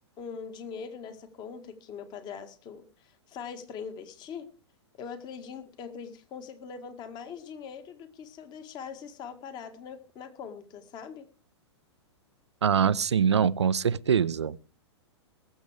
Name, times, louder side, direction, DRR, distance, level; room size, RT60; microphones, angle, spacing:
voice 1, 0.2-4.5 5.0-11.3, left 6 dB, 30° left, 1.9 m, -42 dB
voice 2, 12.6-14.6, right 7 dB, 70° right, 0.6 m, -24 dB
21.5 x 7.2 x 4.8 m
figure-of-eight pair, 105°, 15 cm